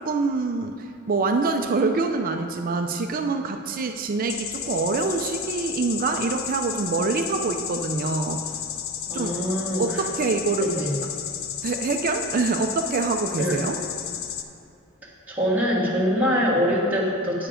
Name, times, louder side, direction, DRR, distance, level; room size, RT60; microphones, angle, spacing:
voice 1, 0.0-8.5 9.1-9.5 9.7-10.7 11.6-13.8, right 3 dB, 40° right, 5 dB, 0.4 m, -25 dB
sound 1, 4.3-14.4, left 9 dB, 65° left, 0.5 m, -33 dB
voice 2, 9.1-10.0 10.6-10.9 13.4-13.6 15.3-17.5, equal, 10° right, -8 dB, 1.6 m, -24 dB
8.9 x 7.0 x 5.0 m, 2.6 s
head